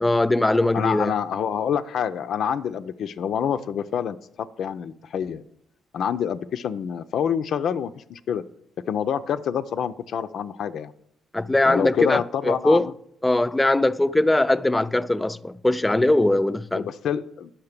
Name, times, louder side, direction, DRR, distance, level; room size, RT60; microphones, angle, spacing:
voice 1, 0.0-1.1 11.3-12.9 13.2-16.9, left 2 dB, 10° left, 0.4 m, -21 dB
voice 2, 0.7-5.4 5.9-8.4 8.9-10.9 11.7-12.9 16.7-17.5, left 8 dB, 70° left, 0.4 m, -27 dB
10.5 x 5.8 x 6.6 m
cardioid pair, 90°, 0 cm